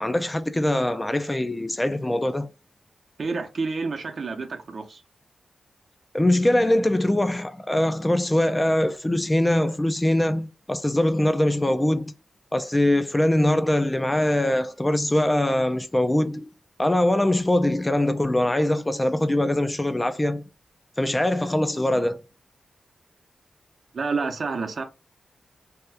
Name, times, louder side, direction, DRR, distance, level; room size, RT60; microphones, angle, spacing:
voice 1, 0.0-2.5 6.1-12.1 12.5-16.5 16.8-20.4 21.0-22.2, left 1 dB, 15° left, 0.4 m, -22 dB
voice 2, 3.2-5.0 23.9-24.8, right 4 dB, 60° right, 0.7 m, -29 dB
2.8 x 2.3 x 3.4 m
cardioid pair, 80°, 0 cm